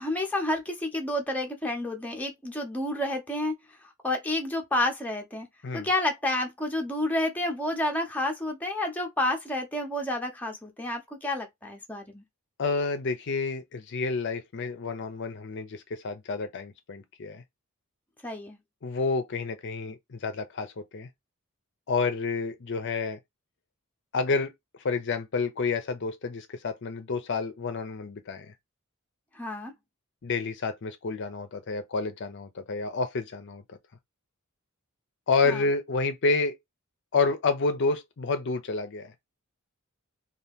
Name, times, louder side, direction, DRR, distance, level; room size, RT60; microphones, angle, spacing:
voice 1, 0.0-3.5 4.0-5.5 5.7-12.2 18.2-18.6 29.4-29.7 35.4-35.6, left 1 dB, 5° left, 0.7 m, -30 dB
voice 2, 12.6-17.4 18.8-21.1 21.9-23.2 24.1-24.5 24.8-28.5 30.2-33.6 35.3-36.6 37.1-39.1, left 4 dB, 55° left, 0.5 m, -29 dB
2.8 x 2.3 x 3.4 m
head